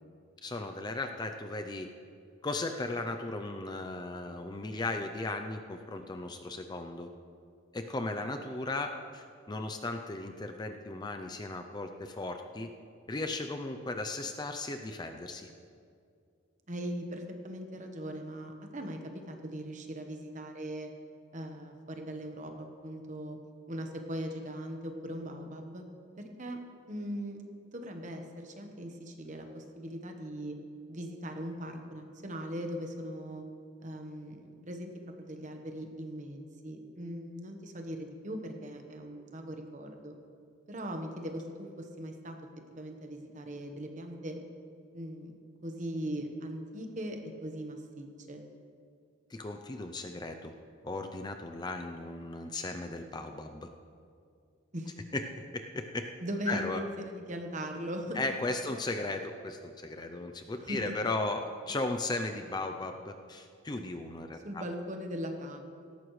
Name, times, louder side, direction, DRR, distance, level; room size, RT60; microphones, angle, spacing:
voice 1, 0.4-1.9 2.4-7.1 7.7-12.7 13.1-15.5 49.3-50.5 50.8-53.7 55.1-55.2 55.5-56.1 56.5-56.8 58.1-64.6, left 2 dB, 20° left, 5 dB, 0.5 m, -36 dB
voice 2, 16.7-20.9 21.3-23.4 23.7-25.8 26.2-26.6 26.9-27.4 27.7-30.6 30.9-33.4 33.8-34.9 35.2-40.1 40.7-42.4 42.7-44.4 44.9-45.3 45.6-48.4 54.7-55.0 56.2-58.2 60.6-60.9 64.4-65.6, equal, 40° right, 4 dB, 1.1 m, -39 dB
17.5 x 13.5 x 3.2 m, 2.3 s
head